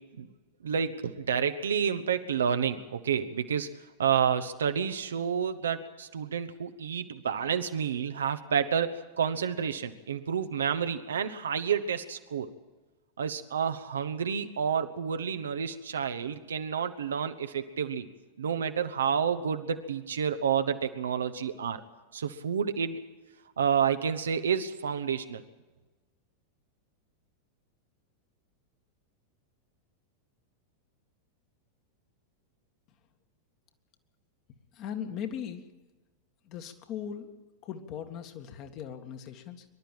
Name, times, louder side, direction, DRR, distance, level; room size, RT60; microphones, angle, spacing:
voice 1, 0.6-3.7 4.0-12.5 13.2-18.1 18.4-21.8 22.1-23.0 23.6-25.4, right 7 dB, 65° right, 9 dB, 1.2 m, -29 dB
voice 2, 34.7-35.6 36.4-37.3 37.6-39.6, left 8 dB, 40° left, 6 dB, 2.0 m, -39 dB
23.5 x 12.0 x 9.0 m, 1.2 s
figure-of-eight pair, 90°, 0 cm